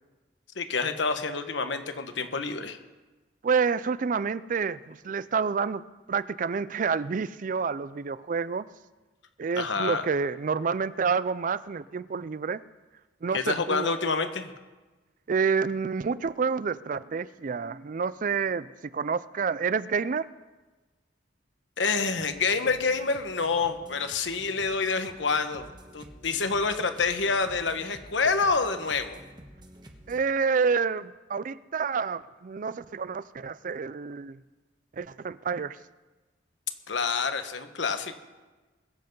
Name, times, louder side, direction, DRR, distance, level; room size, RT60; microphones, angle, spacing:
voice 1, 0.6-2.8 9.6-10.1 13.3-14.5 21.8-25.7 25.9-29.2 36.9-38.1, left 4 dB, 80° left, 8 dB, 1.2 m, -27 dB
voice 2, 3.4-5.8 6.1-8.7 9.4-12.6 13.2-13.9 15.3-18.7 18.9-20.3 30.1-34.4 34.9-35.8, right 5 dB, 45° right, 17 dB, 0.4 m, -28 dB
sound 1, 22.0-30.2, equal, 25° right, 1.3 m, -50 dB
22.0 x 7.9 x 5.4 m, 1.2 s
head